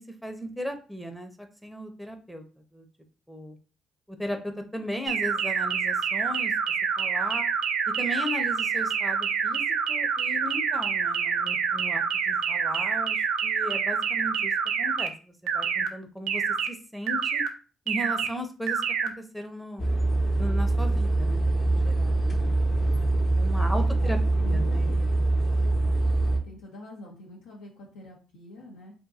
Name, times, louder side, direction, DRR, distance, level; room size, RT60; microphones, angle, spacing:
voice 1, 0.0-2.4 2.7-2.9 3.3-3.6 4.1-7.5 8.0-14.5 14.8-16.4 16.7-17.4 17.9-19.8 20.4-22.7 23.3-24.9, equal, ahead, 5 dB, 0.6 m, -37 dB
sound 1, 5.1-15.1 15.5-15.9 16.3-16.7 17.1-17.5 17.9-18.3 18.7-19.1, right 7 dB, 85° right, 0.4 m, -27 dB
sound 2, 19.8-26.4, right 2 dB, 45° left, 0.7 m, -24 dB
voice 2, 23.6-25.1 26.4-28.9, left 1 dB, 85° left, -2 dB, 0.7 m, -46 dB
2.6 x 2.5 x 2.4 m, 0.35 s
supercardioid pair, 60°, 0 cm